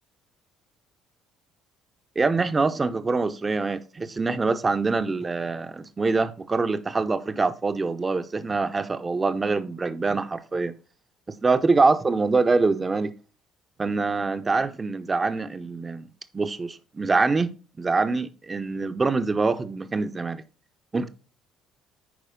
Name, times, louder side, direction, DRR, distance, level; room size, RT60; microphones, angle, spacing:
voice 1, 2.2-10.7 11.4-13.1 13.8-16.1 16.3-17.5 17.8-20.4 20.9-21.1, right 3 dB, 25° right, 0.8 m, -24 dB
9.5 x 4.9 x 3.7 m
figure-of-eight pair, 50°, 0 cm